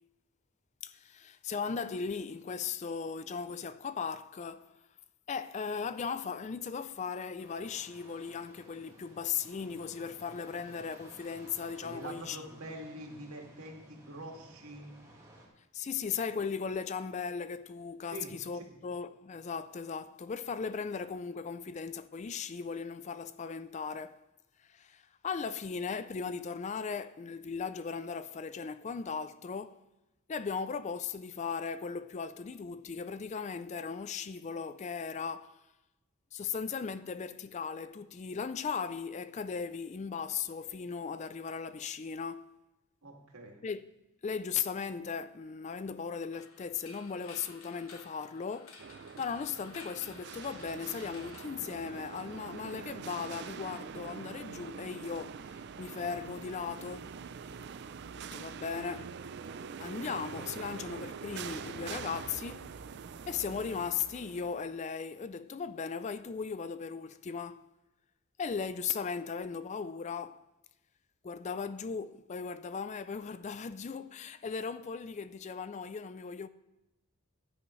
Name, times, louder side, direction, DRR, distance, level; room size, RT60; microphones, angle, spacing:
voice 1, 0.8-4.8 5.3-12.4 15.7-24.2 24.6-29.8 30.3-35.6 36.3-42.5 43.6-43.9 44.2-48.8 49.2-57.2 58.3-59.2 59.8-62.7 63.3-67.7 68.4-70.4 71.2-76.5, left 6 dB, 30° left, 0.3 m, -37 dB
sound 1, 7.4-15.5, right 1 dB, 15° right, 2.0 m, -56 dB
voice 2, 11.8-14.9 18.1-18.6 43.0-43.6, right 1 dB, 80° right, 2.3 m, -45 dB
sound 2, 46.3-52.3, left 3 dB, 75° left, 1.5 m, -54 dB
sound 3, 48.8-64.8, right 6 dB, 50° right, 0.4 m, -44 dB
15.0 x 10.0 x 3.1 m
head